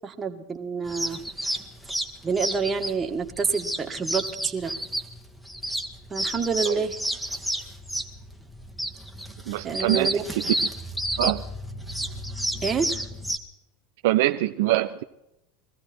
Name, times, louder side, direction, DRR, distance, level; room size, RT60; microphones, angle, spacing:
voice 1, 0.0-1.2 2.2-4.7 6.1-7.0 9.6-10.2 12.6-13.0, right 5 dB, 25° right, 4 dB, 1.8 m, -27 dB
sound 1, 0.8-13.4, right 1 dB, ahead, 1.6 m, -31 dB
voice 2, 9.5-10.1 11.2-11.4 14.0-15.0, right 15 dB, 70° right, 8 dB, 0.6 m, -23 dB
21.5 x 15.0 x 4.4 m, 0.86 s
hypercardioid pair, 90°, 0 cm